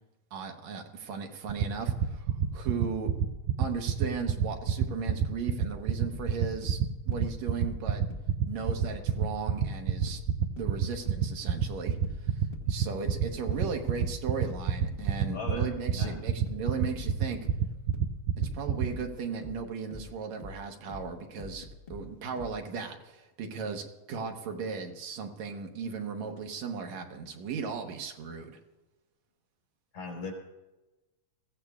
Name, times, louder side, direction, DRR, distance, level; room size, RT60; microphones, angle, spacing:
voice 1, 0.3-3.1 3.6-6.8 7.1-8.0 8.5-10.2 10.6-12.4 12.7-17.4 18.5-28.6, right 5 dB, 70° right, 4 dB, 2.3 m, -36 dB
sound 1, 1.5-18.9, right 9 dB, 90° right, 2.1 m, -26 dB
sound 2, 6.1-9.3 9.6-22.6, left 3 dB, 60° left, 0.6 m, -45 dB
voice 2, 15.3-16.2 29.9-30.3, left 3 dB, 85° left, -1 dB, 5.3 m, -38 dB
21.0 x 15.5 x 2.4 m, 1.1 s
omnidirectional pair, 3.4 m